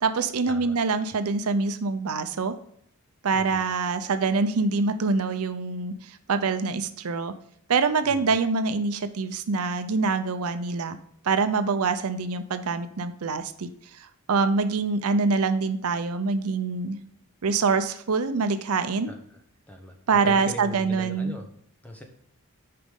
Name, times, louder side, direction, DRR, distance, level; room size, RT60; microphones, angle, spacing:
voice 1, 0.0-2.5 3.2-7.3 7.7-11.0 11.2-13.7 14.3-17.0 17.4-19.1 20.1-21.3, right 4 dB, 75° right, 10 dB, 0.6 m, -25 dB
voice 2, 3.3-3.6 8.0-8.4 19.1-19.9 20.2-21.5 21.8-22.0, equal, 5° left, 3 dB, 1.0 m, -40 dB
6.6 x 5.1 x 3.7 m, 0.67 s
head